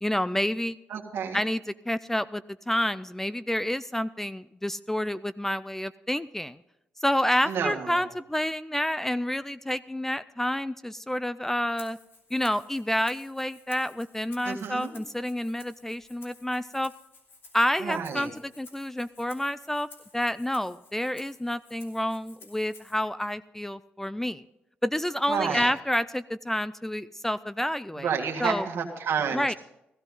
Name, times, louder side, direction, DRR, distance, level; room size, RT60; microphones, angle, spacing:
voice 1, 0.0-0.8 1.3-6.6 7.0-12.0 12.3-16.9 17.5-19.9 20.1-24.4 24.8-28.1 28.4-28.7 29.3-29.5, left 1 dB, 10° left, 16 dB, 0.4 m, -29 dB
voice 2, 0.9-1.4 7.5-8.0 14.4-15.0 17.8-18.3 25.3-25.7 28.0-29.6, right 6 dB, 75° right, 2 dB, 1.9 m, -30 dB
Rattle (instrument), 11.8-23.0, left 3 dB, 65° left, 2.8 m, -54 dB
16.0 x 13.5 x 3.8 m, 0.87 s
cardioid pair, 85°, 4 cm